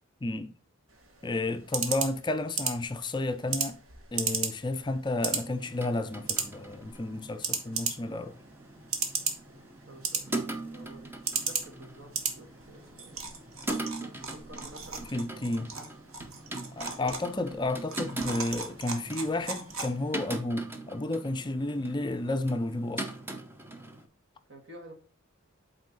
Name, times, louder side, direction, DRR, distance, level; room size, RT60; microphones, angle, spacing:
voice 1, 0.2-0.5 1.2-3.8 4.1-8.4 15.1-15.7 16.8-23.1, left 2 dB, 20° left, 0.4 m, -32 dB
sound 1, 0.9-20.3, right 5 dB, 85° right, 1.3 m, -36 dB
sound 2, 5.4-24.1, right 2 dB, 10° right, 0.7 m, -41 dB
voice 2, 9.5-13.2 14.0-15.2 15.5-15.9 17.0-17.2 24.5-24.9, right 1 dB, 60° right, 1.7 m, -51 dB
8.3 x 3.7 x 4.0 m
head